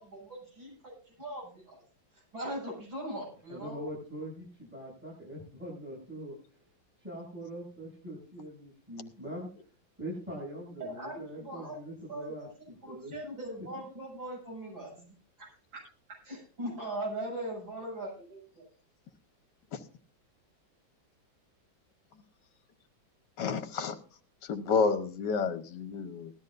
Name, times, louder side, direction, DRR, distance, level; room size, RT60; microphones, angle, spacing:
voice 1, 0.0-0.7 1.2-1.8 2.3-3.8 10.8-11.8 12.1-12.5 12.8-15.0 15.4-15.8 16.2-18.6, right 1 dB, 80° right, -3 dB, 8.5 m, -40 dB
voice 2, 3.5-6.3 7.0-9.5 10.0-13.1, right 1 dB, 5° right, -5 dB, 7.7 m, -42 dB
voice 3, 23.4-23.9 24.5-26.3, left 5 dB, 65° left, 8 dB, 1.8 m, -30 dB
18.5 x 13.0 x 2.6 m, 0.37 s
omnidirectional pair, 2.1 m